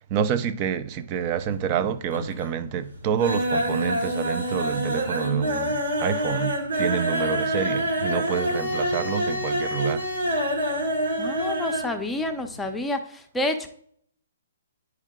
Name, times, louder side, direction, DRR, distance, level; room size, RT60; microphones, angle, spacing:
voice 1, 0.1-10.0, right 8 dB, 35° right, 0.5 m, -28 dB
sound 1, 1.1-1.8 2.1-2.6 2.9-11.9 12.2-12.3 12.6-12.7, equal, 80° right, 1.9 m, -26 dB
voice 2, 11.2-13.7, left 2 dB, 10° left, 0.7 m, -29 dB
9.9 x 4.7 x 3.6 m
hypercardioid pair, 135°, 0 cm